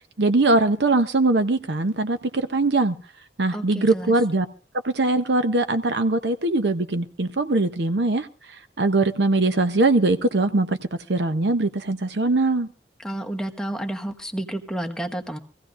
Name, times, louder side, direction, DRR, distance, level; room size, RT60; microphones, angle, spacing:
voice 1, 0.2-3.0 3.4-4.5 4.8-8.3 8.8-10.8 11.1-12.7, right 2 dB, 70° right, 0.8 m, -21 dB
voice 2, 3.5-4.1 13.0-15.4, right 1 dB, 5° left, 1.1 m, -30 dB
24.0 x 15.5 x 2.5 m
head